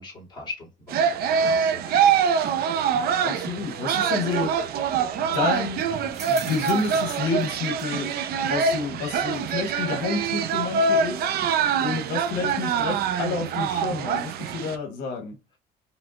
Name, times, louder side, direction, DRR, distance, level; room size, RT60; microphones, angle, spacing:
voice 1, 0.0-2.2, left 3 dB, 25° left, 2.4 m, -41 dB
sound 1, 0.9-14.8, right 6 dB, 65° right, 0.6 m, -24 dB
voice 2, 3.2-4.5 5.2-5.8 6.3-8.1 8.4-11.3 11.8-15.4, left 4 dB, 85° left, 1.0 m, -29 dB
sound 2, 4.2-14.8, right 4 dB, 40° right, 1.3 m, -50 dB
5.0 x 3.3 x 2.4 m
cardioid pair, 110°, 17 cm